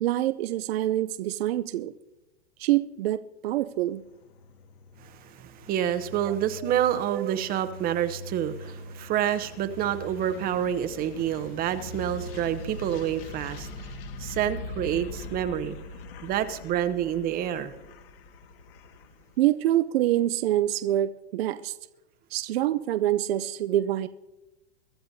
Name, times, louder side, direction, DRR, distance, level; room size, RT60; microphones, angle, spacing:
voice 1, 0.0-1.9 2.6-4.0 6.2-6.3 6.6-6.7 7.1-7.4 19.4-21.7 22.3-24.1, right 13 dB, 65° right, 12 dB, 0.6 m, -26 dB
sound 1, 3.7-19.4, left 2 dB, 55° left, 1.8 m, -42 dB
voice 2, 5.0-13.7 14.2-15.8 16.2-17.7, right 10 dB, 25° right, 11 dB, 0.8 m, -28 dB
23.0 x 12.5 x 2.7 m, 0.99 s
hypercardioid pair, 135°, 33 cm